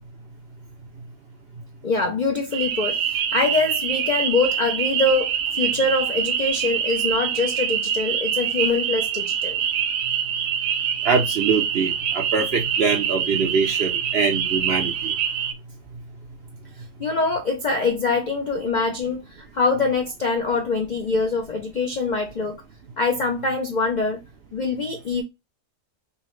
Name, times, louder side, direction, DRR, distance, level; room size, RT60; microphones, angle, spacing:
voice 1, 1.8-9.6 17.0-22.6 23.0-24.2 24.5-25.2, left 3 dB, 65° left, 0.4 m, -24 dB
sound 1, 2.5-15.5, right 9 dB, 85° right, 1.1 m, -25 dB
voice 2, 11.0-15.1, right 5 dB, 60° right, 0.6 m, -23 dB
5.4 x 2.1 x 3.1 m
omnidirectional pair, 1.6 m